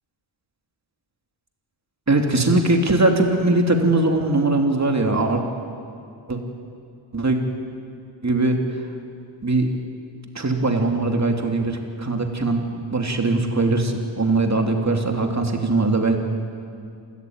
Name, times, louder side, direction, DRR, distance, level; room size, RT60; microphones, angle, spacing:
voice 1, 2.1-5.4 6.3-6.4 7.1-7.4 8.2-8.6 9.4-9.7 10.3-16.2, right 2 dB, 35° right, 3 dB, 2.9 m, -20 dB
28.0 x 14.0 x 9.5 m, 2.4 s
wide cardioid pair, 90°, 49 cm